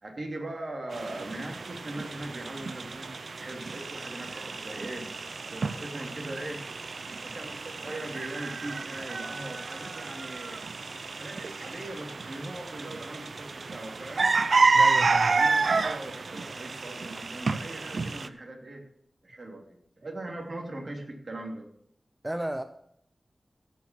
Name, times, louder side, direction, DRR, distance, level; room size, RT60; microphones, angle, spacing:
voice 1, 0.0-5.1 5.5-6.6 7.2-10.6 11.2-14.3 15.3-18.8 19.2-21.7, right 1 dB, 50° right, 1 dB, 2.9 m, -40 dB
sound 1, 0.9-18.3, right 4 dB, 75° right, 0.6 m, -30 dB
voice 2, 14.7-15.3 22.2-22.6, right 1 dB, 15° right, 9 dB, 0.6 m, -33 dB
16.5 x 6.0 x 6.0 m, 0.72 s
wide cardioid pair, 100°, 0 cm